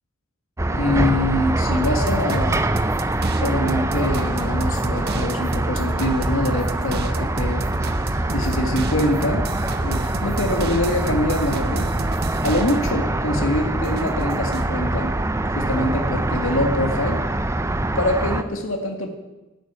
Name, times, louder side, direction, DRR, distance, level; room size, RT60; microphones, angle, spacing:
sound 1, 0.6-18.4, right 2 dB, 15° right, 0.6 m, -24 dB
voice 1, 0.7-2.7 3.3-7.7 8.3-9.5 9.8-11.9 12.4-15.1 15.4-17.2 18.0-19.1, left 1 dB, 75° left, 3 dB, 1.9 m, -24 dB
sound 2, 1.8-13.0 13.4-14.8, right 2 dB, 45° right, 0.8 m, -32 dB
12.0 x 9.0 x 9.5 m, 1.0 s
head